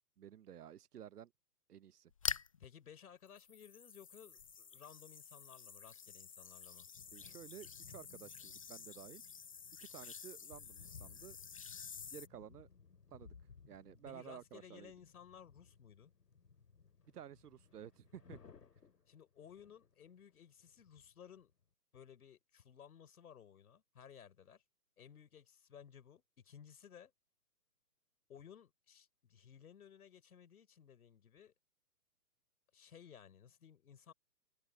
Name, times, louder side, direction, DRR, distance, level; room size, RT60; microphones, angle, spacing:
voice 1, 0.2-1.3 1.7-2.1 7.1-9.2 9.8-11.4 12.1-12.7 13.1-13.3 13.7-14.9 17.1-18.4, right 10 dB, 75° right, 1.0 m, -53 dB
sound 1, 2.1-2.6 3.3-12.3, left 6 dB, 25° left, 0.4 m, -48 dB
voice 2, 2.6-6.9 14.0-16.1 19.1-21.5 21.9-24.6 25.0-27.1 28.3-31.5 32.7-34.1, left 8 dB, 65° left, 4.9 m, -58 dB
sound 2, 4.2-4.3 5.8-6.3 6.7-21.6, left 5 dB, 90° left, 2.9 m, -62 dB
hypercardioid pair, 145°, 47 cm